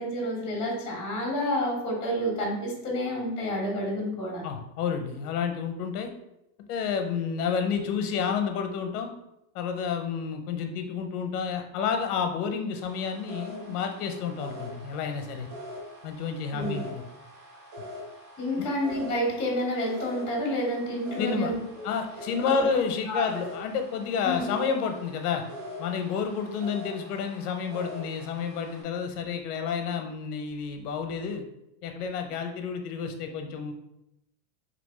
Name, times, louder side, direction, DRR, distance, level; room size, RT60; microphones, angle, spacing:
voice 1, 0.0-4.4 16.5-16.8 18.4-21.9 23.1-23.2 24.2-24.4, equal, 10° left, -5 dB, 1.0 m, -29 dB
voice 2, 4.4-6.1 6.7-9.1 9.5-15.5 16.0-17.0 18.5-18.7 21.2-21.5 21.8-25.4 25.8-31.4 31.8-33.7, left 6 dB, 70° left, 5 dB, 0.9 m, -30 dB
sound 1, 12.8-28.8, left 1 dB, 25° right, 0.6 m, -43 dB
3.4 x 3.0 x 4.2 m, 0.85 s
supercardioid pair, 170°, 48 cm